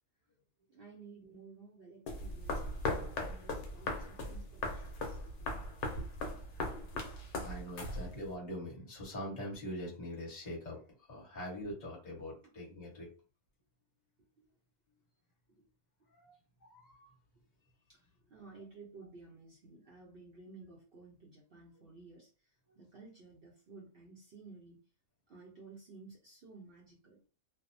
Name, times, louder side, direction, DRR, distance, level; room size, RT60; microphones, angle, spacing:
voice 1, 0.7-5.2 6.7-7.1 14.4-14.5 15.5-15.7 17.9-24.8 25.3-27.2, right 4 dB, 70° right, -3 dB, 0.5 m, -55 dB
sound 1, 2.1-8.3, left 2 dB, 80° left, 1.1 m, -39 dB
voice 2, 7.4-13.1 16.1-17.1, equal, 30° left, -4 dB, 1.1 m, -43 dB
2.6 x 2.0 x 2.5 m, 0.36 s
omnidirectional pair, 1.6 m